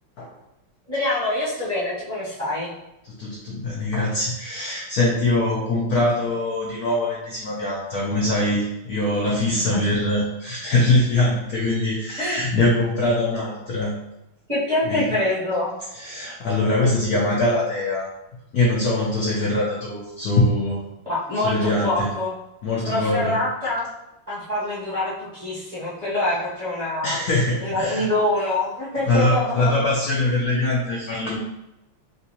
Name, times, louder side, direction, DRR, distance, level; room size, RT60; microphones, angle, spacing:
voice 1, 0.9-2.7 9.5-9.8 12.2-12.4 14.5-15.7 21.0-22.3 22.8-23.9 24.3-27.2 27.6-29.7, left 2 dB, 35° right, -10 dB, 0.7 m, -25 dB
voice 2, 3.1-13.9 14.9-15.0 15.9-18.1 18.5-20.8 21.4-22.1 22.6-23.4 27.0-28.1 29.1-31.4, left 2 dB, 85° left, -4 dB, 0.8 m, -22 dB
3.9 x 2.6 x 2.9 m, 0.90 s
omnidirectional pair, 2.4 m